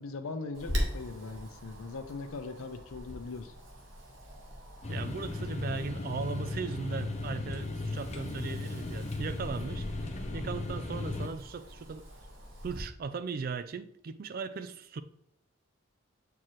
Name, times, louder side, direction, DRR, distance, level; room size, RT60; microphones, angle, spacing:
voice 1, 0.0-3.5, left 3 dB, 85° left, 0.6 m, -40 dB
Wind, 0.5-12.8, equal, 65° right, 1.5 m, -42 dB
sound 1, 4.8-11.3, left 2 dB, 35° left, 0.6 m, -36 dB
voice 2, 4.9-12.1 12.6-15.0, right 5 dB, 45° right, 0.3 m, -38 dB
7.3 x 4.6 x 3.1 m
head